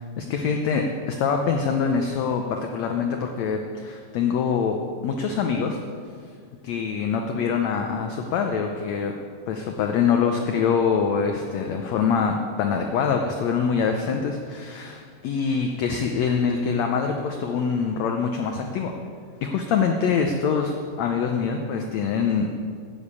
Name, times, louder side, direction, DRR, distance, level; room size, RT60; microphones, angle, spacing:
voice 1, 0.2-4.8 5.0-5.8 6.6-9.1 9.5-18.9 19.4-22.5, left 6 dB, 80° left, 4 dB, 1.5 m, -24 dB
11.5 x 7.1 x 8.4 m, 2.2 s
omnidirectional pair, 4.0 m